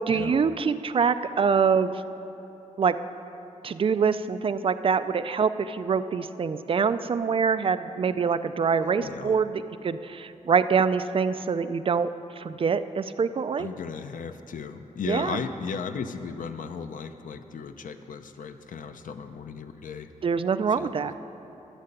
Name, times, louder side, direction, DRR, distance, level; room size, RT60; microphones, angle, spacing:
voice 1, 0.1-1.9 2.8-3.0 3.6-12.1 12.4-13.7 15.0-15.4 20.2-21.1, right 6 dB, 45° right, 11 dB, 0.4 m, -25 dB
voice 2, 9.0-9.3 13.6-20.1 20.8-20.9, left 5 dB, 85° left, 8 dB, 0.6 m, -36 dB
12.5 x 6.7 x 9.9 m, 2.9 s
wide cardioid pair, 165°, 13 cm